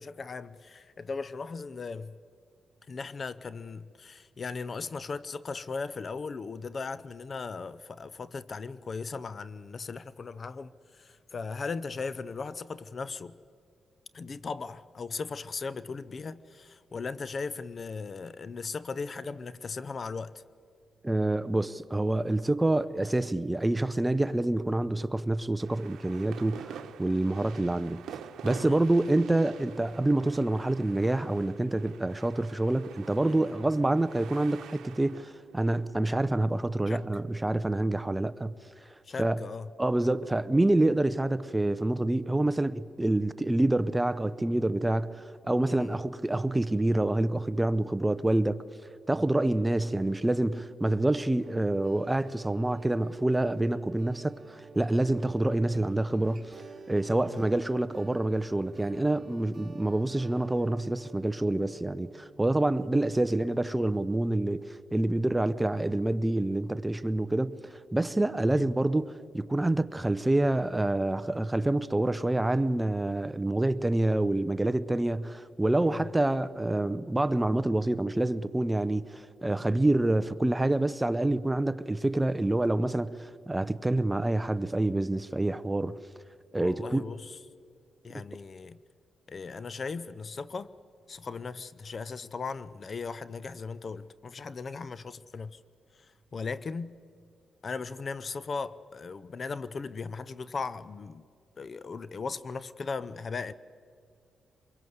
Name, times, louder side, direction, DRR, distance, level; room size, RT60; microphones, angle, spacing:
voice 1, 0.0-2.2 2.9-13.4 14.1-20.4 28.6-28.8 33.2-33.6 36.9-37.0 39.0-39.7 45.7-46.0 57.2-57.3 68.5-68.7 75.8-76.1 86.5-87.4 88.0-88.8 89.3-90.7 91.1-95.6 96.0-97.0 97.6-101.3 101.6-103.5, left 4 dB, 45° left, 0.6 m, -38 dB
voice 2, 21.0-28.0 28.4-38.5 39.2-39.4 39.8-48.6 49.1-86.0 86.5-87.0, right 1 dB, 15° right, 0.7 m, -27 dB
sound 1, 25.6-37.1, right 8 dB, 90° right, 1.0 m, -47 dB
sound 2, 50.9-63.1, right 4 dB, 40° right, 3.3 m, -50 dB
24.5 x 22.5 x 8.0 m
cardioid pair, 90°, 0 cm